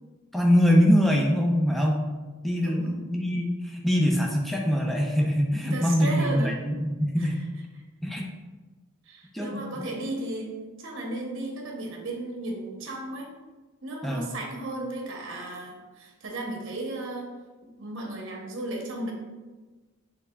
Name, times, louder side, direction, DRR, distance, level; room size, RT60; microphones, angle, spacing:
voice 1, 0.3-2.1 2.4-7.4 8.0-8.3 9.3-9.8 14.0-14.3, equal, ahead, -1 dB, 0.4 m, -23 dB
voice 2, 2.6-2.9 5.7-6.5 7.2-7.3 9.1-10.5 10.8-13.3 13.8-17.3 17.8-19.1, right 2 dB, 60° right, 0 dB, 0.8 m, -34 dB
5.8 x 3.3 x 2.3 m, 1.3 s
head